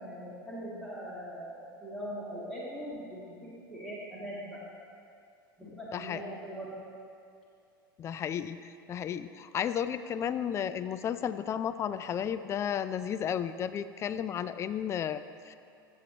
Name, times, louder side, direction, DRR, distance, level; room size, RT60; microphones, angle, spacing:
voice 1, 0.0-1.5 1.8-4.6 5.6-6.7, equal, 5° left, -8 dB, 1.9 m, -41 dB
voice 2, 5.6-6.2 8.0-8.6 8.9-15.5, left 9 dB, 25° left, 12 dB, 0.3 m, -33 dB
14.5 x 7.2 x 2.9 m, 2.5 s
figure-of-eight pair, 85°, 12 cm